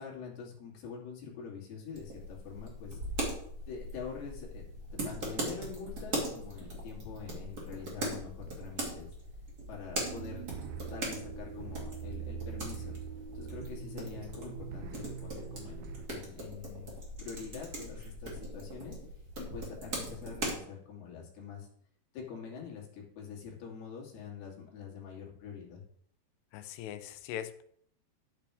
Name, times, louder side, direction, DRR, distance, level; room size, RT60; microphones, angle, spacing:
voice 1, 0.0-3.0 3.7-9.1 9.7-10.5 10.9-13.0 13.3-19.0 19.4-21.7 22.1-25.8, left 6 dB, 70° left, -3 dB, 4.6 m, -45 dB
sound 1, 1.9-20.6, right 1 dB, 30° right, 2.2 m, -40 dB
Cyberpunk Urban Walk, 9.9-16.1, right 10 dB, 75° right, 2.4 m, -43 dB
voice 2, 26.5-27.6, left 10 dB, 85° left, 10 dB, 2.9 m, -40 dB
12.0 x 8.9 x 3.5 m, 0.66 s
omnidirectional pair, 4.8 m